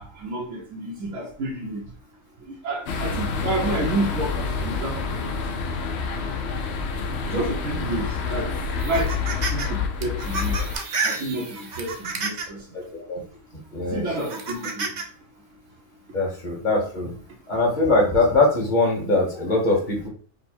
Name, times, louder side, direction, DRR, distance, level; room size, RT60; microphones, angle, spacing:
voice 1, 0.0-1.8 2.5-5.3 7.2-8.5 8.8-9.1 9.5-10.5 11.0-11.9 12.2-12.6 13.9-14.9, right 2 dB, 75° right, -3 dB, 1.3 m, -29 dB
sound 1, 2.9-10.8, left 5 dB, 60° left, 0.8 m, -28 dB
sound 2, 8.8-9.7 10.0-12.6 13.2-13.3 14.1-15.0, right 4 dB, 45° right, 0.7 m, -30 dB
voice 2, 13.7-14.0 16.1-17.1 17.5-20.1, left 2 dB, 35° left, -2 dB, 1.6 m, -21 dB
5.5 x 2.1 x 4.3 m, 0.43 s
omnidirectional pair, 1.4 m